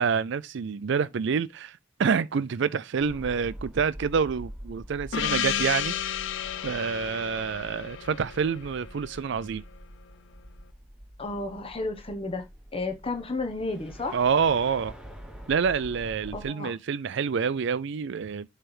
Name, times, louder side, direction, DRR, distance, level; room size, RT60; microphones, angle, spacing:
voice 1, 0.0-6.3 6.6-9.6 14.1-14.9 15.5-18.5, right 6 dB, 60° right, 0.4 m, -27 dB
sound 1, 3.0-16.5, equal, 5° right, 1.4 m, -45 dB
Gong, 5.1-9.5, left 10 dB, 60° left, 0.5 m, -32 dB
voice 2, 11.2-12.5 12.7-14.2 16.3-16.7, left 2 dB, 30° left, 1.0 m, -32 dB
7.8 x 3.3 x 6.0 m
head